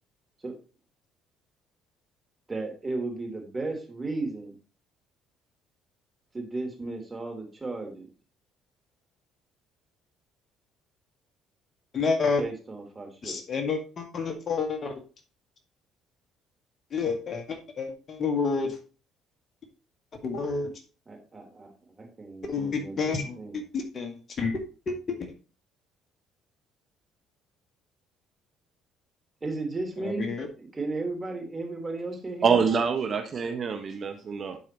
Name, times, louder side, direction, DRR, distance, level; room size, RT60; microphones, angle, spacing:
voice 1, 2.5-4.6 6.3-8.1 12.4-13.4 21.1-21.7 22.0-23.6 29.4-32.6, right 3 dB, 25° right, 2 dB, 3.2 m, -35 dB
voice 2, 11.9-12.4 13.2-15.0 16.9-18.8 20.2-20.7 22.4-25.2 30.0-30.5, left 4 dB, 45° left, 5 dB, 1.8 m, -29 dB
voice 3, 32.4-34.6, right 6 dB, 45° right, 5 dB, 1.1 m, -25 dB
11.0 x 4.8 x 3.0 m, 0.34 s
hypercardioid pair, 55°, 0 cm